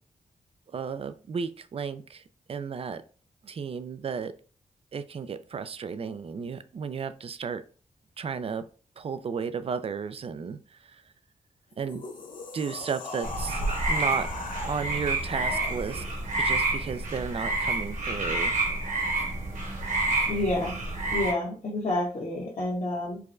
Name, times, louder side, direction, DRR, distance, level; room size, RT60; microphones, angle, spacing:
voice 1, 0.7-2.2 2.5-3.0 3.4-4.3 4.9-7.6 8.2-8.6 9.0-11.0 11.8-12.0 12.5-13.6 13.9-14.3 14.6-16.0 16.4-18.5, right 6 dB, 45° right, 12 dB, 0.4 m, -33 dB
sound 1, 11.7-16.3, left 3 dB, 75° left, 0.7 m, -40 dB
sound 2, 13.2-21.3, right 2 dB, 65° right, 1.3 m, -29 dB
voice 2, 20.3-20.8 21.1-23.2, left 1 dB, 50° left, -6 dB, 1.1 m, -29 dB
4.7 x 2.2 x 2.5 m, 0.41 s
cardioid pair, 60°, 14 cm